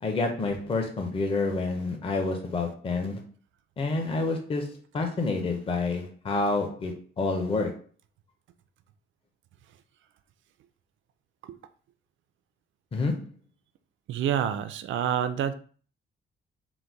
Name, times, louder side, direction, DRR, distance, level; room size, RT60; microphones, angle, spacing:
voice 1, 0.0-3.2 3.8-7.7 12.9-13.3, left 3 dB, 25° left, 3 dB, 0.5 m, -28 dB
voice 2, 14.1-15.5, right 9 dB, 70° right, 11 dB, 0.4 m, -27 dB
3.9 x 2.1 x 4.5 m, 0.43 s
cardioid pair, 155°, 20 cm